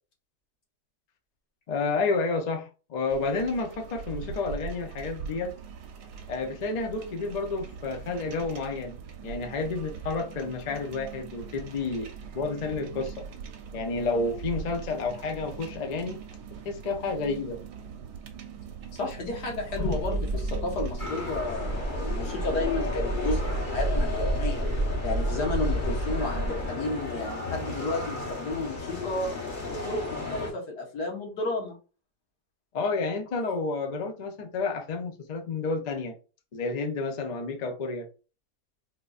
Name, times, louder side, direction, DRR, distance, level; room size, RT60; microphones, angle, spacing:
voice 1, 1.7-5.5 6.3-9.0 9.2-13.1 13.7-16.2 16.6-17.6 19.8-20.0 32.7-36.2 36.5-38.1, left 3 dB, 60° left, 0.4 m, -30 dB
sound 1, 3.1-21.4, right 6 dB, 80° right, 1.2 m, -41 dB
voice 2, 18.9-24.7 25.0-29.3 29.7-31.8, left 2 dB, 85° left, 1.8 m, -32 dB
sound 2, 19.7-26.7, right 1 dB, 10° left, 0.7 m, -30 dB
sound 3, 21.0-30.5, left 3 dB, 35° left, 1.0 m, -35 dB
4.4 x 2.6 x 2.4 m
omnidirectional pair, 1.7 m